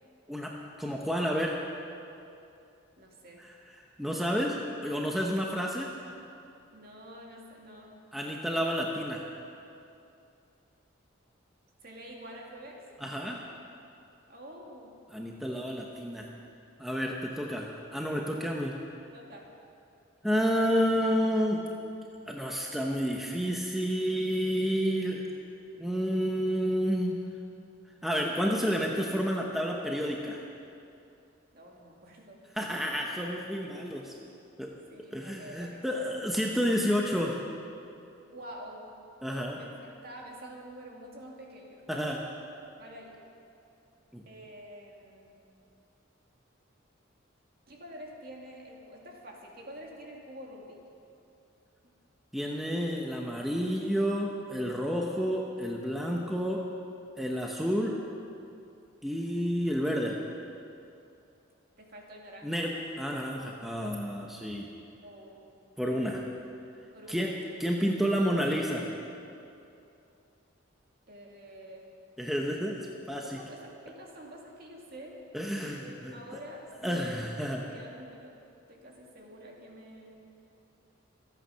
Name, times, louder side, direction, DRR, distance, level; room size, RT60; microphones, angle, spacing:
voice 1, 0.8-1.6 3.4-3.5 4.0-5.9 8.1-9.2 13.0-13.4 15.1-16.3 16.8-18.7 20.2-21.6 22.3-25.2 25.7-27.2 28.0-30.4 32.5-34.1 34.6-34.7 35.1-37.4 39.2-39.6 41.9-42.2 44.1-44.2 52.3-56.6 57.2-58.0 59.0-60.2 62.4-62.7 63.0-64.7 65.8-66.3 67.1-67.3 67.6-68.9 72.2-73.4 75.3-76.4 76.8-77.6, equal, ahead, -1 dB, 0.9 m, -30 dB
voice 2, 3.0-3.4 6.7-8.0 11.8-12.8 14.3-15.0 19.1-19.5 31.5-32.5 33.6-34.0 34.9-36.2 38.3-38.8 39.6-41.9 42.8-43.2 44.3-45.4 47.7-50.8 61.8-62.5 65.0-65.5 66.9-67.3 71.1-71.9 73.2-75.2 75.6-78.4 78.7-80.2, equal, 50° right, -1 dB, 2.5 m, -47 dB
26.5 x 9.1 x 5.7 m, 2.6 s
head